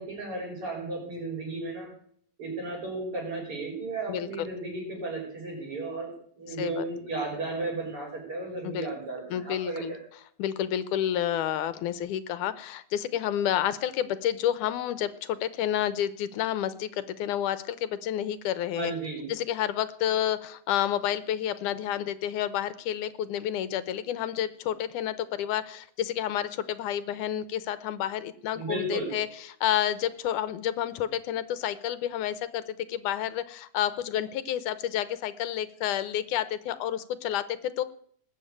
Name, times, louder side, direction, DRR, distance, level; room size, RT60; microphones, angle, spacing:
voice 1, 0.0-1.9 2.4-10.0 18.8-19.3 28.5-29.1, right 2 dB, 45° right, -1 dB, 6.8 m, -34 dB
voice 2, 4.1-4.5 6.5-6.8 8.6-8.9 9.3-9.9 10.4-18.9 19.3-37.8, left 11 dB, 80° left, 14 dB, 2.3 m, -30 dB
20.0 x 7.6 x 8.9 m, 0.62 s
omnidirectional pair, 3.6 m